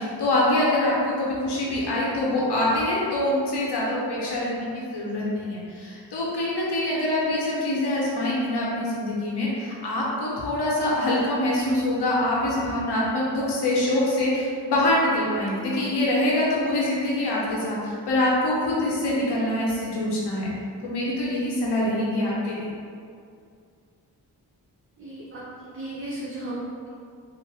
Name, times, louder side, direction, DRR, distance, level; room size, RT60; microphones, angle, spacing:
voice 1, 0.0-20.5 20.8-22.6, left 1 dB, 75° left, -6 dB, 0.9 m, -25 dB
voice 2, 25.0-26.9, right 1 dB, 30° right, -7 dB, 0.6 m, -35 dB
3.1 x 2.0 x 3.4 m, 2.3 s
cardioid pair, 55°, 41 cm